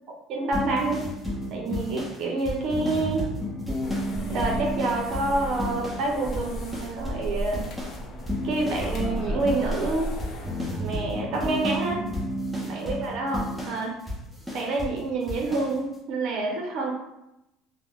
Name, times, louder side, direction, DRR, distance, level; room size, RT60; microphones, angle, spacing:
voice 1, 0.3-1.1 1.5-3.3 4.3-7.6 8.4-10.1 10.8-12.0 12.6-14.0 14.5-16.9, right 2 dB, 60° right, 0 dB, 0.6 m, -28 dB
sound 1, 0.5-6.1 6.3-7.3 7.5-15.0 15.3-15.7, equal, ahead, 0.9 m, -32 dB
sound 2, 3.8-10.6, equal, 55° left, 0.6 m, -35 dB
3.5 x 2.1 x 2.3 m, 0.88 s
supercardioid pair, 95°, 0 cm